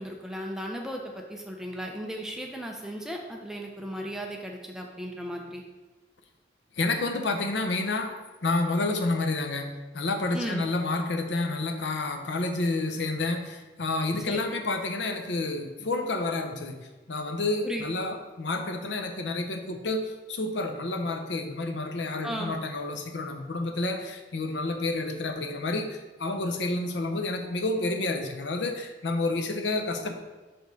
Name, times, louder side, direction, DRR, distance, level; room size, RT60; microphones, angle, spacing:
voice 1, 0.0-5.6 10.3-10.6 14.2-14.4 17.6-17.8 22.2-22.6, equal, 5° right, 1 dB, 0.6 m, -36 dB
voice 2, 6.8-8.1 8.4-16.8 17.1-30.2, left 2 dB, 85° left, 5 dB, 0.7 m, -29 dB
6.0 x 5.2 x 3.9 m, 1.2 s
head